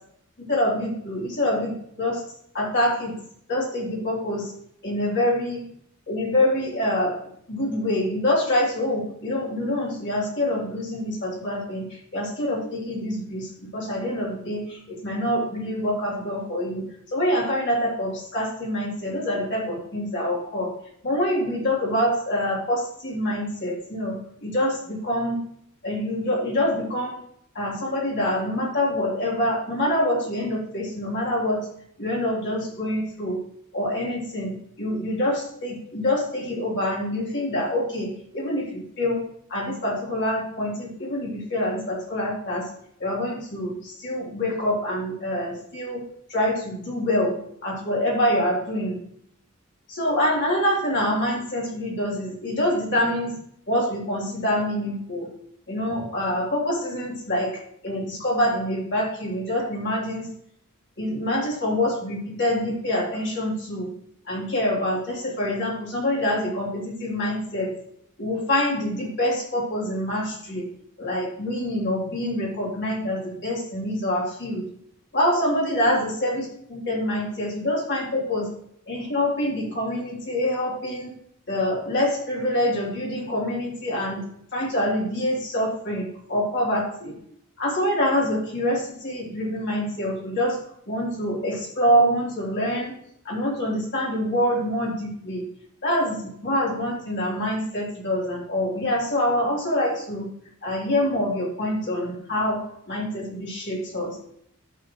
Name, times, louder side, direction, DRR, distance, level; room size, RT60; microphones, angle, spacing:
voice 1, 0.4-2.2 2.5-3.2 3.5-4.5 4.8-5.7 6.1-7.2 7.5-16.8 17.1-20.8 21.0-25.4 25.8-27.2 27.5-31.7 32.0-33.4 33.7-42.7 43.0-46.0 46.3-49.0 49.9-53.4 53.7-55.3 55.7-60.3 61.0-63.9 64.3-67.8 68.2-70.7 71.0-74.7 75.1-78.5 78.9-81.1 81.5-84.3 84.5-87.1 87.6-90.6 90.9-93.0 93.2-95.5 95.8-100.3 100.6-104.2, left 1 dB, 55° left, -5 dB, 3.6 m, -26 dB
12.5 x 7.1 x 3.1 m, 0.70 s
head